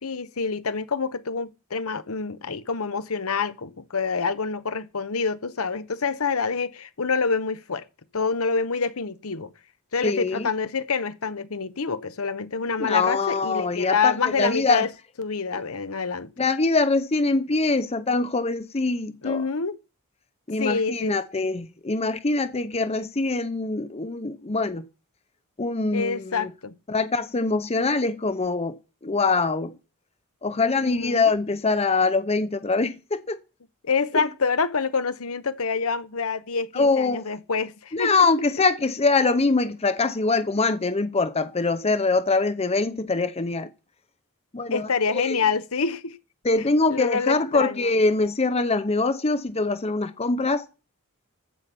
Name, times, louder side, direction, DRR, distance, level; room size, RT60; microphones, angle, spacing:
voice 1, 0.0-7.8 8.1-9.5 9.9-14.9 15.2-16.3 19.2-19.8 20.6-21.1 25.9-26.7 30.8-31.3 33.8-38.1 44.7-46.2 46.9-47.9, left 5 dB, 70° left, 1.0 m, -27 dB
voice 2, 10.0-10.5 12.8-14.9 15.5-15.6 16.4-19.4 20.5-24.9 25.6-26.5 26.9-28.8 29.0-29.8 30.4-33.4 36.7-37.2 37.9-43.7 44.5-45.4 46.4-50.6, left 3 dB, 30° left, 0.8 m, -23 dB
14.5 x 5.7 x 8.5 m
head